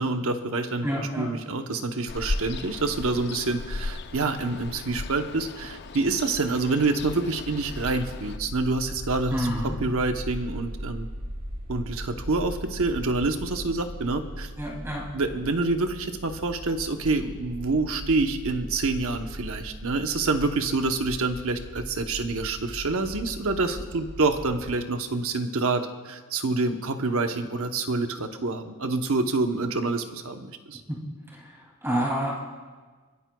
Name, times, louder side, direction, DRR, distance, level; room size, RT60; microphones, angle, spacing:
voice 1, 0.0-11.1 11.7-14.5 15.1-30.8, right 3 dB, 65° right, 6 dB, 0.9 m, -27 dB
voice 2, 0.8-1.3 9.3-9.8 14.6-15.0 30.9-31.0 31.3-31.5 31.8-32.4, equal, 10° right, -3 dB, 2.6 m, -28 dB
Ocean, 2.1-8.4, left 3 dB, 50° left, 0.6 m, -36 dB
sound 1, 7.0-24.7, equal, 40° right, 2.7 m, -39 dB
30.0 x 11.0 x 2.3 m, 1.4 s
head